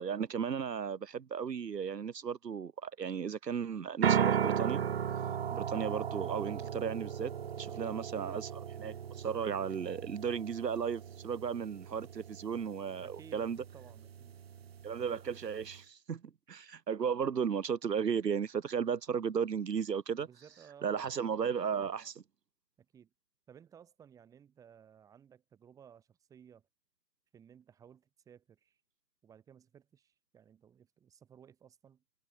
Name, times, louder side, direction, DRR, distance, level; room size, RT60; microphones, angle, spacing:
voice 1, 0.0-4.8 5.5-7.3 7.6-13.6 14.8-16.2 16.5-20.3 20.8-22.2, right 7 dB, 80° right, 1.8 m, -35 dB
sound 1, 4.0-15.8, right 8 dB, 40° right, 1.8 m, -36 dB
voice 2, 13.0-14.3 20.2-21.1 22.8-23.1 23.5-26.7 27.3-28.8 29.2-32.0, right 8 dB, 5° right, 5.3 m, -58 dB
hypercardioid pair, 170°, 48 cm